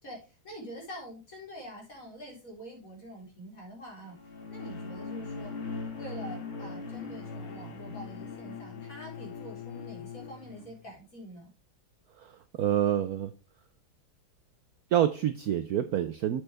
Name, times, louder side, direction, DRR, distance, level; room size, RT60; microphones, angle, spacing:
voice 1, 0.0-4.2 4.5-5.6 6.0-11.5, equal, 40° left, -2 dB, 4.3 m, -45 dB
sound 1, 4.0-10.7, left 3 dB, 65° left, 2.7 m, -41 dB
Bowed string instrument, 6.8-10.9, left 13 dB, 90° left, 1.6 m, -46 dB
voice 2, 12.2-13.3 14.9-16.4, right 10 dB, 80° right, 10 dB, 0.8 m, -27 dB
8.0 x 7.7 x 3.3 m, 0.31 s
omnidirectional pair, 2.3 m